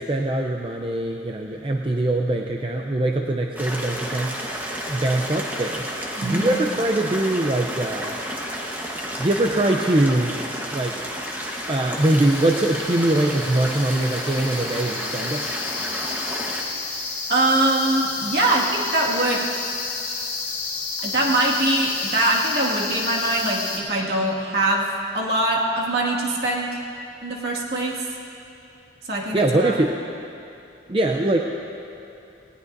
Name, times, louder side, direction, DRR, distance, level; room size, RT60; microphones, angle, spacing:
voice 1, 0.0-4.4 4.9-5.8 6.2-8.2 9.2-10.4 10.7-11.0 11.7-15.5 29.3-30.0 30.9-31.4, right 1 dB, 30° right, 2 dB, 0.5 m, -22 dB
sound 1, 3.6-16.6, equal, 10° right, 1.1 m, -31 dB
voice 2, 6.2-6.7 17.3-19.5 21.0-24.9 25.1-26.7 27.2-28.0 29.0-29.8, right 1 dB, 60° right, -3 dB, 2.0 m, -23 dB
sound 2, 12.0-23.8, left 4 dB, 35° left, 2.2 m, -31 dB
19.0 x 19.0 x 2.6 m, 2.7 s
head